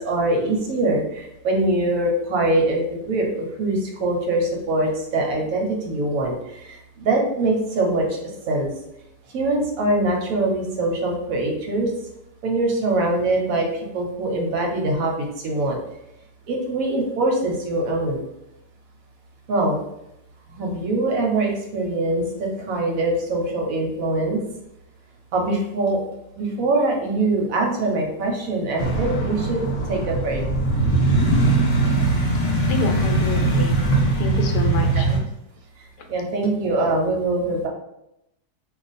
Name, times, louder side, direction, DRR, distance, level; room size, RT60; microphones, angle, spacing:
voice 1, 0.0-8.7 9.3-11.9 12.4-13.7 13.9-15.8 16.5-18.2 19.5-19.8 20.5-24.4 25.3-26.0 26.4-30.4 35.0-35.1 36.1-37.7, right 2 dB, 65° right, 0 dB, 0.9 m, -23 dB
sound 1, 28.8-35.2, right 2 dB, 55° left, 1.0 m, -20 dB
voice 2, 32.7-33.8 34.2-35.1 36.0-36.1, left 2 dB, 75° left, 4 dB, 1.1 m, -27 dB
2.4 x 2.4 x 4.0 m, 0.85 s
omnidirectional pair, 1.8 m